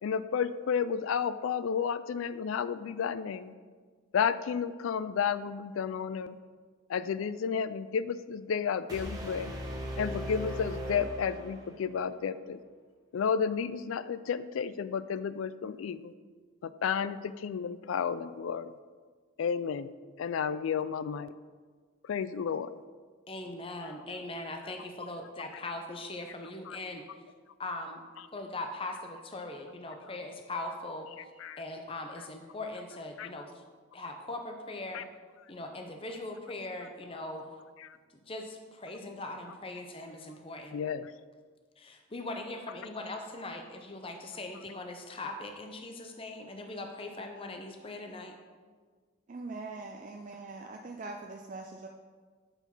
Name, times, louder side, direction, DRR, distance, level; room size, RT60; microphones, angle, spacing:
voice 1, 0.0-3.5 4.1-6.4 6.9-9.5 10.0-12.6 13.1-16.1 16.6-18.7 19.4-19.9 20.2-21.3 22.0-22.7 26.7-26.8 31.4-31.6 33.2-33.3 34.9-35.0 37.8-38.0 40.7-41.1, left 7 dB, 75° left, 14 dB, 0.3 m, -32 dB
sound 1, 8.9-12.0, right 1 dB, 20° right, 0.9 m, -38 dB
voice 2, 23.3-27.1 27.6-28.0 28.3-33.6 33.9-35.1 35.5-37.5 38.1-40.8 41.8-48.3, left 2 dB, 25° left, 4 dB, 0.6 m, -40 dB
voice 3, 49.3-51.9, right 3 dB, 40° right, 3 dB, 0.4 m, -42 dB
8.0 x 4.5 x 5.6 m, 1.5 s
head